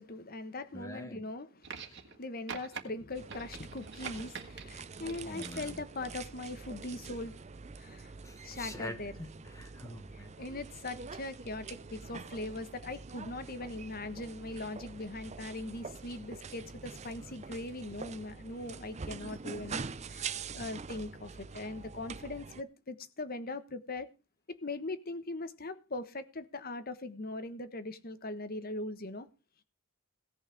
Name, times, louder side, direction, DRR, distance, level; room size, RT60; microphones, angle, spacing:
voice 1, 0.0-7.4 7.8-8.1 8.4-9.1 9.9-24.1 24.5-29.3, left 2 dB, 45° left, 1.2 m, -41 dB
voice 2, 0.7-1.3 1.9-2.0 5.2-5.8 8.2-10.3 13.2-13.4, left 1 dB, 15° left, 1.3 m, -45 dB
sound 1, 1.6-2.2 2.5-2.8 3.3-4.7 5.1-5.7 6.8-6.9, right 6 dB, 55° right, 1.9 m, -44 dB
sound 2, 3.1-22.6, right 5 dB, 30° right, 0.6 m, -45 dB
17.0 x 5.7 x 6.9 m
head